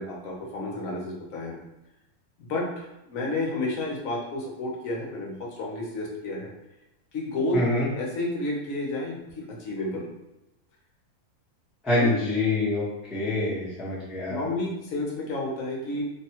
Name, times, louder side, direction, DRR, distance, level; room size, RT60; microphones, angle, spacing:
voice 1, 0.0-1.6 2.4-6.5 7.1-7.6 7.9-10.1 11.9-12.2 14.3-16.0, left 2 dB, 60° left, -2 dB, 1.0 m, -31 dB
voice 2, 7.5-7.9 11.8-12.8 13.1-14.4, left 2 dB, ahead, -8 dB, 0.4 m, -25 dB
3.4 x 2.2 x 2.8 m, 0.92 s
omnidirectional pair, 1.8 m